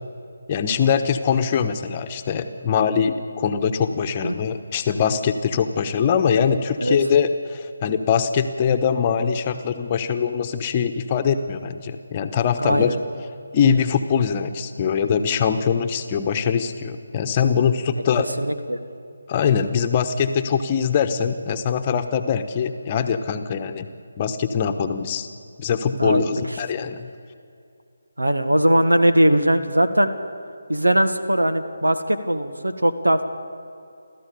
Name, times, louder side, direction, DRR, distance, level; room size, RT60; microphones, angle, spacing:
voice 1, 0.5-13.0 13.5-18.3 19.3-23.9 24.2-25.3 25.6-27.1, left 7 dB, 25° left, 7 dB, 1.1 m, -22 dB
voice 2, 12.6-13.0 18.4-18.8 26.0-26.6 28.2-30.1 30.7-33.2, right 1 dB, 85° right, 9 dB, 1.7 m, -20 dB
29.5 x 14.0 x 6.9 m, 2.5 s
figure-of-eight pair, 150°, 0 cm